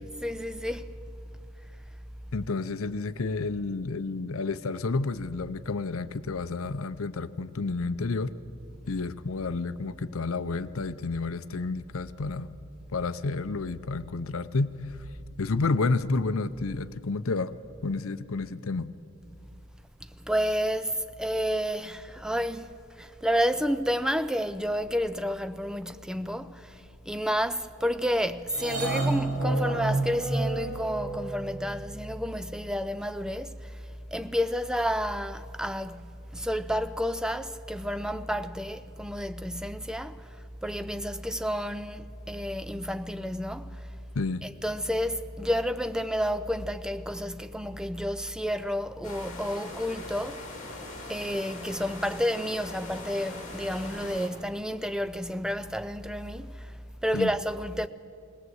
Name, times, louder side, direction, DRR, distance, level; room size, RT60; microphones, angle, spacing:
voice 1, 0.2-0.9 20.2-33.8 34.1-43.9 44.4-50.5 51.1-56.7 57.0-57.9, equal, 5° right, 0.4 m, -30 dB
voice 2, 2.3-8.3 8.9-12.5 12.9-14.7 15.4-17.5 17.8-18.9 44.1-44.4 57.1-57.3, left 3 dB, 70° left, 0.6 m, -30 dB
sound 1, 28.5-31.6, right 2 dB, 80° right, 5.1 m, -29 dB
sound 2, 49.0-54.3, left 2 dB, 35° left, 3.1 m, -41 dB
20.0 x 18.0 x 7.9 m
head